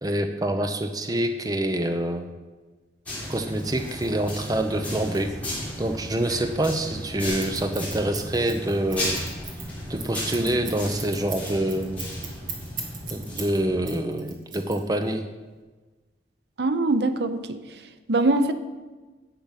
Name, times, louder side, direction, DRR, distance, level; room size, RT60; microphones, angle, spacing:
voice 1, 0.0-2.3 3.3-9.2 9.9-12.1 13.1-15.2, right 1 dB, 20° right, 7 dB, 0.6 m, -26 dB
sound 1, 3.0-13.9, left 1 dB, 10° left, 3.5 m, -35 dB
Scissors, 7.4-13.6 13.9-15.1, right 5 dB, 45° right, 2.0 m, -37 dB
voice 2, 16.6-18.5, right 2 dB, 65° right, 10 dB, 0.7 m, -24 dB
10.5 x 7.6 x 5.8 m, 1.3 s
head